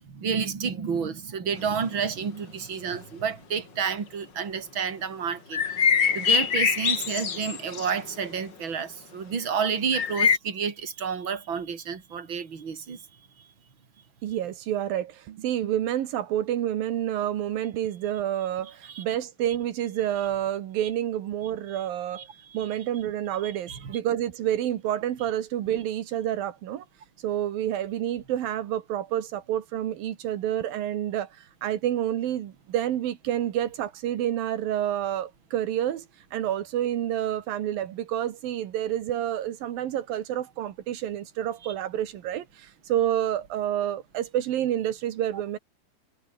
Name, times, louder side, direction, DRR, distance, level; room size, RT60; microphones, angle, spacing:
voice 1, 0.0-5.6 6.1-13.0 18.9-19.0 21.7-21.8 22.2-22.6 23.4-23.8, right 6 dB, 35° right, 3.7 m, -30 dB
sound 1, 5.5-7.9 8.2-8.3 9.9-10.4, left 6 dB, 40° left, 2.0 m, -24 dB
voice 2, 14.2-22.3 22.5-26.8 27.2-36.1 36.3-45.6, right 11 dB, 85° right, 3.4 m, -29 dB
omnidirectional pair, 4.0 m